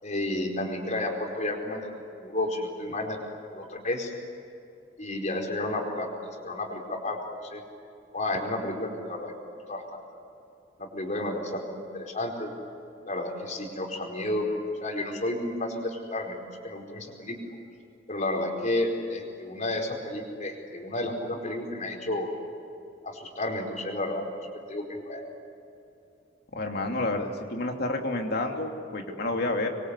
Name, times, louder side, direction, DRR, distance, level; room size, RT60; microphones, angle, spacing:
voice 1, 0.0-1.9 2.2-3.2 3.5-4.1 5.0-6.1 6.4-7.6 8.1-9.3 9.7-10.0 10.8-12.5 13.0-14.5 14.8-16.4 16.6-17.4 18.1-22.3 23.0-25.2, left 1 dB, 40° left, 1 dB, 4.6 m, -31 dB
voice 2, 26.5-29.7, left 2 dB, 60° left, 2 dB, 2.7 m, -29 dB
26.0 x 23.0 x 8.4 m, 2.7 s
head